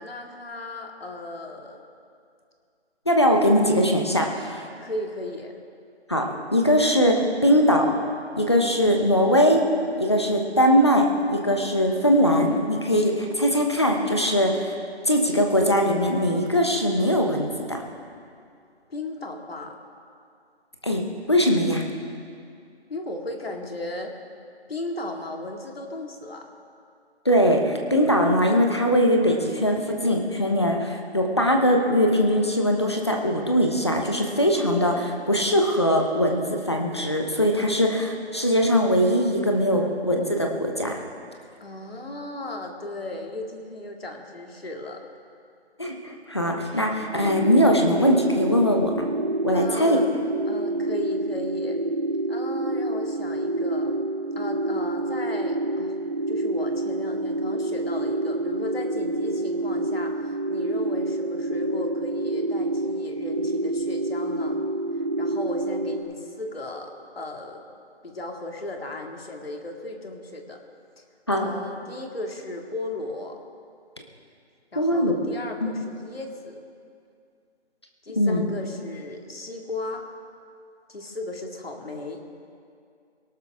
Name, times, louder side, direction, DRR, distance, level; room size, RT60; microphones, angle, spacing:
voice 1, 0.0-1.8 4.8-5.5 18.9-19.8 22.9-24.1 24.7-26.5 41.6-45.0 49.5-50.1 50.5-51.8 52.3-54.0 54.4-56.0 56.3-64.6 65.2-67.6 68.0-70.6 71.0-71.1 71.3-73.4 74.7-76.6 78.0-80.1 80.9-82.2, left 2 dB, 60° left, 2 dB, 2.3 m, -36 dB
voice 2, 3.1-4.6 6.1-6.3 6.5-7.9 8.4-9.6 10.0-14.7 15.1-17.8 20.8-21.8 27.2-41.0 45.8-49.0 49.4-50.0 71.3-71.5 74.8-75.1 75.6-75.7 78.2-78.4, equal, 25° left, 2 dB, 1.0 m, -21 dB
sound 1, 47.1-66.0, right 2 dB, 40° right, 0.7 m, -27 dB
23.0 x 12.0 x 3.6 m, 2.3 s
figure-of-eight pair, 175°, 34 cm